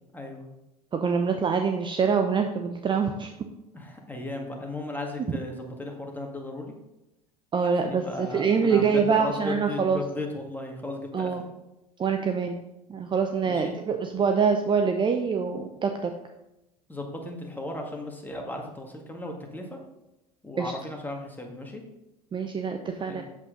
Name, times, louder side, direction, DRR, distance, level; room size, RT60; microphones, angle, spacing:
voice 1, 0.1-0.5 3.7-6.7 7.8-11.5 13.4-13.7 16.9-19.8 20.4-21.8 23.1-23.2, left 2 dB, 10° left, 1 dB, 2.0 m, -36 dB
voice 2, 0.9-3.3 5.3-5.4 7.5-10.0 11.1-11.4 12.0-12.6 12.9-16.1 20.6-20.7 22.3-23.2, right 6 dB, 25° right, 5 dB, 0.7 m, -25 dB
8.1 x 7.5 x 3.9 m, 0.92 s
figure-of-eight pair, 75°, 20 cm